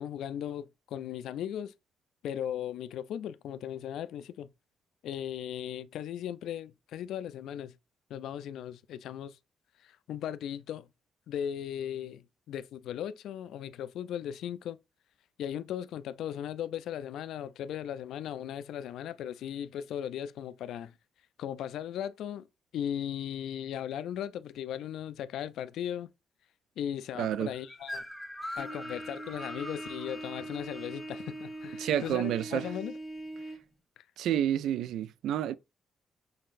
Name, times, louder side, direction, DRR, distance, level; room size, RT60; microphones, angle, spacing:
voice 1, 0.0-1.7 2.2-4.5 5.0-7.8 8.1-9.4 9.8-10.9 11.3-14.8 15.4-20.9 21.4-22.5 22.7-26.1 26.8-28.1 28.6-33.0, left 10 dB, 80° left, 0.3 m, -37 dB
sound 1, 27.1-32.1, left 1 dB, 5° right, 1.0 m, -44 dB
voice 2, 27.2-27.5 31.8-32.7 34.2-35.6, right 10 dB, 80° right, 0.3 m, -29 dB
Trumpet, 28.6-33.6, right 1 dB, 20° left, 1.1 m, -42 dB
5.6 x 3.7 x 2.5 m
cardioid pair, 90°, 0 cm